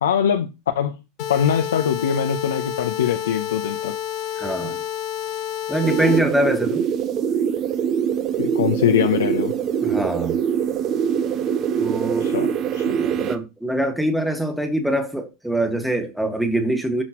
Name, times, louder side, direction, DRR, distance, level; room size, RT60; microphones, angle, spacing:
voice 1, 0.0-0.5 0.7-1.0 1.3-3.9 8.4-9.5 12.2-12.5 12.7-12.9, left 8 dB, 90° left, 0.8 m, -22 dB
sound 1, 1.2-6.2, left 10 dB, 55° left, 1.8 m, -29 dB
voice 2, 4.4-4.8 5.7-6.8 9.8-10.4 11.8-12.3 12.9-17.0, right 1 dB, ahead, 1.9 m, -23 dB
sound 2, 5.8-13.4, right 8 dB, 40° right, 1.1 m, -23 dB
12.5 x 5.8 x 3.1 m
hypercardioid pair, 105°, 0 cm